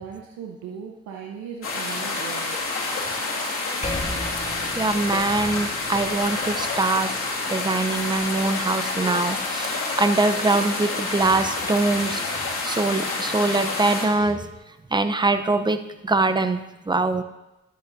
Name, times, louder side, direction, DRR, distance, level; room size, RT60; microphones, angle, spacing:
voice 1, 0.0-2.6, right 7 dB, 75° right, 1 dB, 0.9 m, -38 dB
sound 1, 1.6-14.1, left 3 dB, 45° left, 2.5 m, -28 dB
Percussion, 3.8-8.6, left 1 dB, 25° left, 2.1 m, -37 dB
voice 2, 4.7-7.1 7.5-14.6 14.9-17.2, right 3 dB, 15° right, 9 dB, 0.7 m, -23 dB
12.0 x 7.8 x 2.7 m, 0.96 s
supercardioid pair, 55°, 29 cm